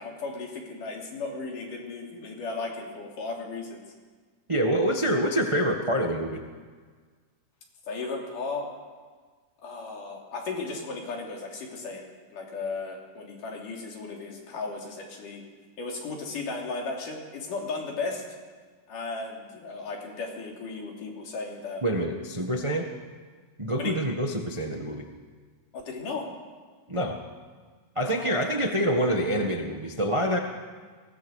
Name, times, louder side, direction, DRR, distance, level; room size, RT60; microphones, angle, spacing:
voice 1, 0.0-3.8 7.9-8.7 9.6-15.4 15.8-18.2 18.9-21.8 23.8-23.9 25.7-26.3 28.0-28.4, left 3 dB, 90° left, 0 dB, 4.7 m, -35 dB
voice 2, 4.5-6.4 21.8-22.9 23.6-25.0 26.9-27.2 27.9-30.4, equal, 40° right, 3 dB, 0.4 m, -26 dB
23.0 x 18.0 x 6.5 m, 1.5 s
omnidirectional pair, 3.6 m